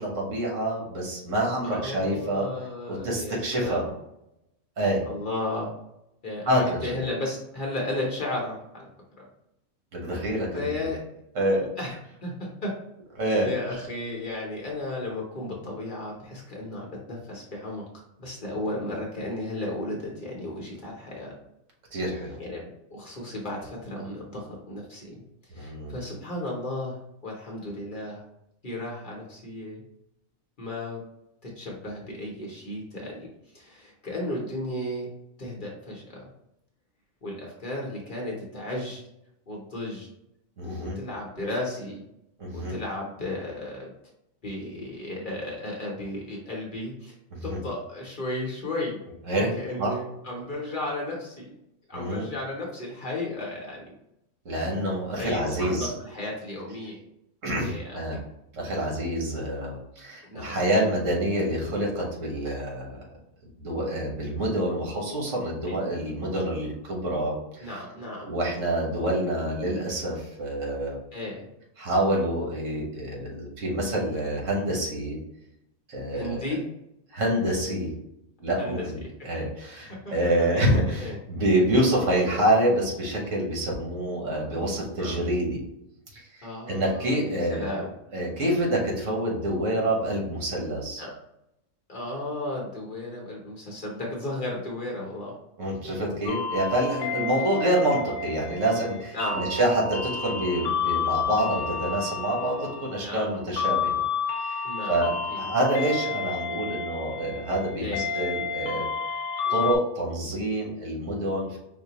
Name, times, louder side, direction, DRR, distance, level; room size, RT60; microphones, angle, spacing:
voice 1, 0.0-2.5 2.9-3.8 4.8-5.0 6.4-6.9 9.9-10.7 11.3-11.7 13.2-13.5 21.9-22.4 25.6-25.9 40.6-41.0 42.4-42.7 47.3-47.6 49.3-49.5 49.8-49.9 51.9-52.3 54.4-55.9 57.4-58.2 58.5-63.0 63.6-67.7 68.3-71.0 71.8-75.2 75.9-76.4 77.1-77.9 78.4-79.0 79.2-85.6 86.1-87.6 88.1-91.0 95.6-104.1 104.4-104.6 104.9-108.9 109.5-111.6, right 1 dB, 70° right, -2 dB, 1.5 m, -27 dB
voice 2, 1.6-3.9 5.1-5.7 6.2-8.9 9.2-9.3 10.5-11.0 11.8-11.9 12.2-12.7 13.4-17.8 18.2-21.3 22.4-25.2 25.5-28.2 28.6-29.8 30.6-31.0 31.4-33.3 33.5-35.1 35.4-36.3 37.2-39.0 39.5-40.1 40.6-42.0 42.5-43.9 44.4-47.1 47.4-49.0 49.3-51.5 51.9-53.9 54.7-54.8 55.1-57.0 57.6-58.2 60.2-60.7 65.7-65.8 67.6-68.3 71.1-71.5 74.8-74.9 76.1-76.6 78.6-78.8 79.9-81.2 85.0-85.2 86.4-87.9 91.0-91.1 91.9-95.3 96.0-96.1 96.5-96.6 99.1-99.5 103.0-103.4 104.6-105.5 107.8-108.2, left 1 dB, 45° left, -3 dB, 0.9 m, -34 dB
sound 1, 96.3-109.8, left 5 dB, 85° left, 1.0 m, -31 dB
5.2 x 2.1 x 2.8 m, 0.84 s
omnidirectional pair, 1.4 m